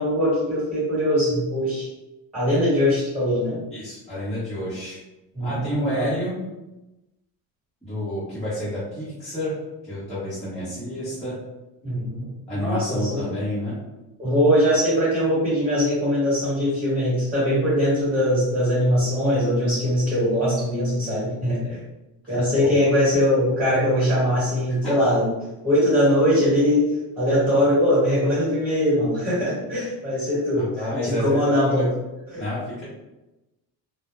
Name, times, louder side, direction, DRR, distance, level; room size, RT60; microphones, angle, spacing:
voice 1, 0.0-1.9 2.3-3.6 5.3-6.1 11.8-12.3 12.5-13.3 14.2-21.8 22.3-25.3 25.6-26.8 27.2-30.6 31.0-31.9 32.3-32.4, equal, 20° right, -9 dB, 1.2 m, -21 dB
voice 2, 3.7-5.0 5.4-6.4 7.8-9.6 9.8-11.4 12.5-13.7 22.6-22.7 24.8-25.1 30.6-31.9 32.4-32.8, left 1 dB, ahead, -14 dB, 0.7 m, -29 dB
2.2 x 2.0 x 2.9 m, 1.0 s
cardioid pair, 165°, 39 cm